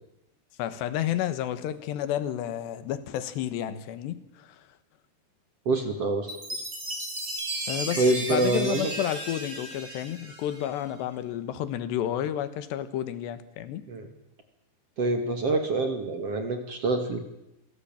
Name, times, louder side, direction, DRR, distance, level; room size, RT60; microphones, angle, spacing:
voice 1, 0.6-4.7 7.7-13.8, left 11 dB, 85° left, 3.5 m, -31 dB
voice 2, 5.7-6.3 8.0-8.9 13.9-14.1 15.0-17.2, right 2 dB, 45° right, 2.6 m, -26 dB
Chime, 6.3-10.9, right 2 dB, 20° right, 4.2 m, -35 dB
26.5 x 17.5 x 9.0 m
omnidirectional pair, 4.9 m